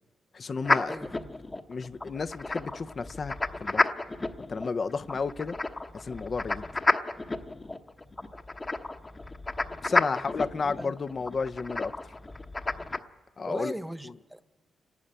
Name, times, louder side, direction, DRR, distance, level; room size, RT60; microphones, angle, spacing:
voice 1, 0.3-1.0 1.7-3.3 3.6-3.8 4.5-5.6 5.9-6.6 9.8-12.1 13.4-13.7, left 4 dB, 45° left, 0.7 m, -32 dB
sound 1, 0.6-13.0, left 2 dB, 25° left, 1.0 m, -31 dB
voice 2, 0.9-1.3 10.0-10.3 10.6-11.0 13.5-14.5, right 1 dB, 5° right, 1.1 m, -39 dB
30.0 x 12.0 x 8.9 m
cardioid pair, 65°, 0 cm